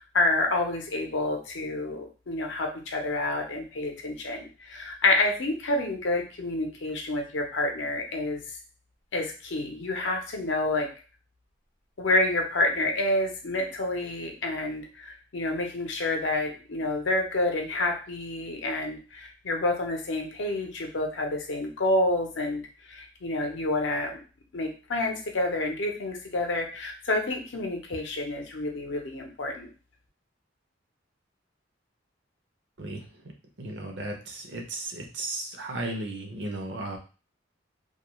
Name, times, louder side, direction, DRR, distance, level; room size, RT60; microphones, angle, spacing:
voice 1, 0.0-8.6 9.1-10.9 12.0-24.1 24.5-29.7, left 2 dB, 70° left, 2 dB, 0.6 m, -28 dB
voice 2, 33.6-37.0, right 2 dB, 65° right, 3 dB, 0.6 m, -35 dB
2.3 x 2.2 x 3.0 m, 0.35 s
head